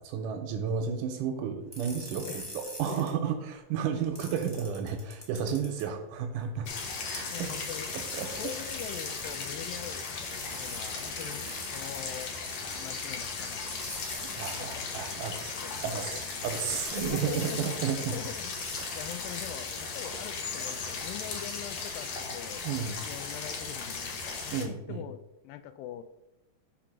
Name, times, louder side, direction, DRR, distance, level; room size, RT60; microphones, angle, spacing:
voice 1, 0.0-6.7 7.0-7.5 7.9-8.5 14.2-15.6 15.8-18.2 22.6-23.0 24.5-25.0, right 7 dB, 80° right, 6 dB, 2.1 m, -33 dB
sound 1, 1.7-3.1 4.1-5.8 7.1-9.4 10.3-12.5 13.7-14.7 15.6-17.8 18.6-19.8, equal, 20° left, 0.6 m, -43 dB
sound 2, 6.7-24.6, left 4 dB, 65° left, 1.7 m, -37 dB
voice 2, 7.3-7.9 8.4-10.1 10.5-12.3 12.7-16.2 17.1-17.7 18.0-18.5 18.9-22.7 23.0-26.0, left 10 dB, 85° left, 10 dB, 2.2 m, -43 dB
5.1 x 4.5 x 6.1 m, 0.92 s
omnidirectional pair, 4.1 m